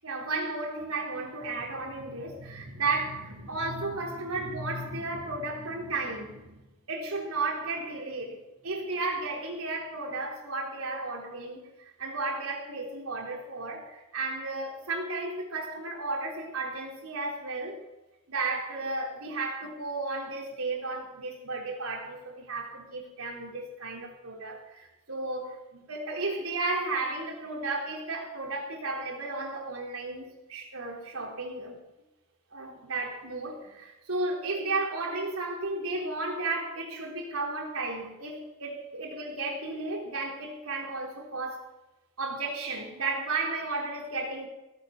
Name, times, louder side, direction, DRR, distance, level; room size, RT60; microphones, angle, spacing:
voice 1, 0.0-6.6 6.9-8.4 8.6-17.8 18.3-31.8 32.5-41.6 42.2-44.5, right 3 dB, 80° right, -1 dB, 4.1 m, -33 dB
18.0 x 8.9 x 6.1 m, 1.0 s
head